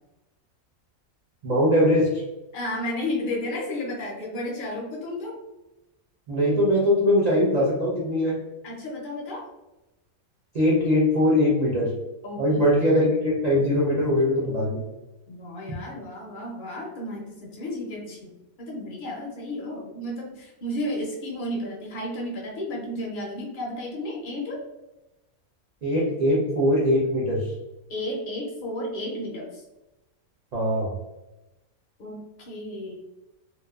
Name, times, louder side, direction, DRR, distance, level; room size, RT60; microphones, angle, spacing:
voice 1, 1.4-2.2 6.3-8.4 10.5-11.9 12.4-14.8 25.8-27.5 30.5-30.9, left 1 dB, 80° right, -5 dB, 0.3 m, -21 dB
voice 2, 2.5-5.4 8.6-9.5 12.2-13.3 15.3-24.6 27.9-29.6 32.0-33.0, left 1 dB, 60° left, -2 dB, 0.5 m, -33 dB
2.9 x 2.0 x 2.2 m, 1.0 s
omnidirectional pair, 1.5 m